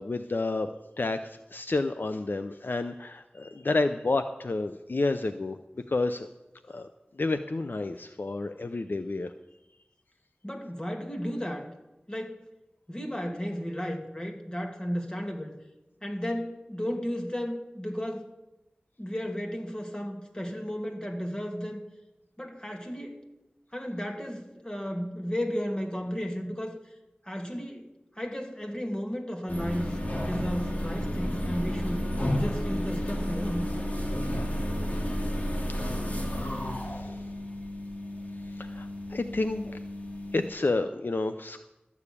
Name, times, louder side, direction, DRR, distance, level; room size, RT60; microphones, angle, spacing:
voice 1, 0.0-5.6 5.9-6.3 6.6-6.9 7.1-9.3 35.8-35.9 36.3-37.2 38.6-39.8 40.3-41.6, left 2 dB, 70° left, 9 dB, 0.5 m, -30 dB
voice 2, 10.4-11.7 12.1-12.5 12.9-15.6 16.0-18.3 19.0-21.8 22.4-23.2 23.7-26.8 27.2-27.9 28.2-32.1 32.3-33.7, equal, 25° left, 1 dB, 2.5 m, -34 dB
sound 1, 29.5-40.5, equal, 45° left, 2.5 m, -32 dB
13.0 x 7.1 x 8.4 m, 0.98 s
wide cardioid pair, 40°, 3 cm